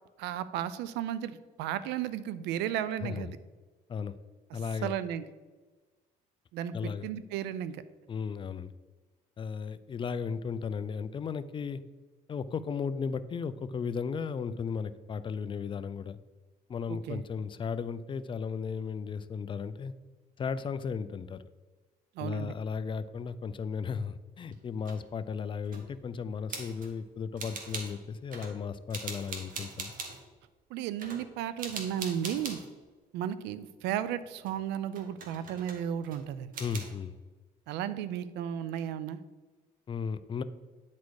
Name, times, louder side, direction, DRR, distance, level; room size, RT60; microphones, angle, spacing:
voice 1, 0.2-3.4 4.8-5.2 6.5-7.8 17.1-17.2 22.2-22.5 30.7-32.6 33.1-36.5 37.7-39.2, right 10 dB, 90° right, 15 dB, 0.5 m, -34 dB
voice 2, 4.5-4.9 6.7-7.1 8.1-8.7 9.4-11.8 12.3-16.2 16.7-19.9 20.4-21.4 22.2-29.9 36.6-37.1 39.9-40.4, left 6 dB, 30° left, 14 dB, 0.4 m, -35 dB
sound 1, 24.5-25.0 25.7-25.9 26.5-26.9 27.4-28.0 28.3-28.6 28.9-30.2 31.0-31.3 31.6-32.7 33.8-34.6 34.9-36.3 36.5-36.9, right 4 dB, 55° right, 1.4 m, -41 dB
9.5 x 4.2 x 4.7 m, 1.3 s
cardioid pair, 110°, 17 cm